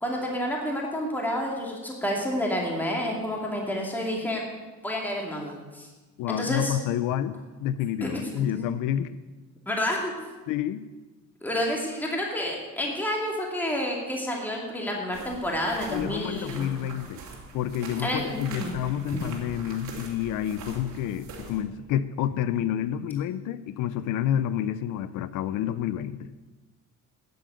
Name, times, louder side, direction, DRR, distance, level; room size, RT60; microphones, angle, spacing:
voice 1, 0.0-4.4 4.8-5.9 6.3-6.8 8.0-8.5 9.7-10.1 11.4-16.7 18.0-18.7 19.1-19.2, left 1 dB, 5° left, -1 dB, 2.5 m, -29 dB
voice 2, 6.2-9.2 10.5-10.9 15.9-17.2 17.5-26.3, left 10 dB, 85° left, 15 dB, 0.6 m, -29 dB
sound 1, 15.1-21.6, right 4 dB, 65° right, 3.2 m, -43 dB
12.5 x 7.8 x 7.8 m, 1.2 s
cardioid pair, 125°, 31 cm